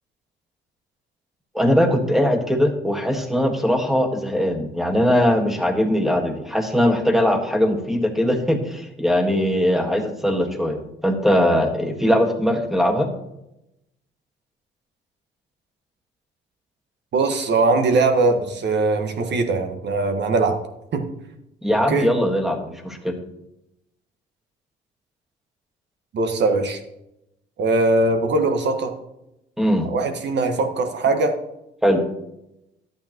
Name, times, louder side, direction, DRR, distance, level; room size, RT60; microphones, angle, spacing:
voice 1, 1.5-13.1 21.6-23.2 29.6-29.9 31.8-32.0, equal, ahead, 4 dB, 1.6 m, -20 dB
voice 2, 17.1-20.6 20.9-21.0 21.7-22.1 26.1-26.8 27.6-28.9 29.9-31.4, right 3 dB, 60° right, 6 dB, 1.4 m, -21 dB
11.5 x 8.7 x 3.0 m, 0.87 s
cardioid pair, 90°, 20 cm